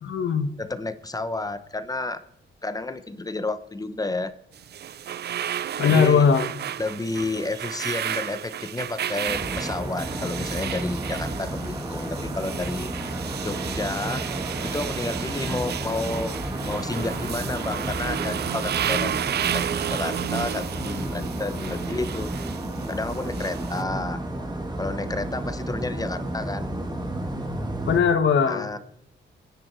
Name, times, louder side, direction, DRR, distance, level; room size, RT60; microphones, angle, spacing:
voice 1, 0.0-0.5 5.8-6.5 27.9-28.7, left 6 dB, 75° left, 9 dB, 1.6 m, -20 dB
voice 2, 0.6-2.2 2.6-4.3 5.8-6.2 6.8-12.9 13.4-14.2 14.6-16.3 16.6-22.3 22.9-24.2 24.8-26.7 28.5-28.8, left 2 dB, 20° left, 11 dB, 0.8 m, -31 dB
sound 1, 4.5-23.8, right 10 dB, 60° right, 0.5 m, -32 dB
sound 2, 9.3-28.0, right 1 dB, 20° right, 2.3 m, -32 dB
25.0 x 9.9 x 4.5 m, 0.74 s
wide cardioid pair, 130°, 19 cm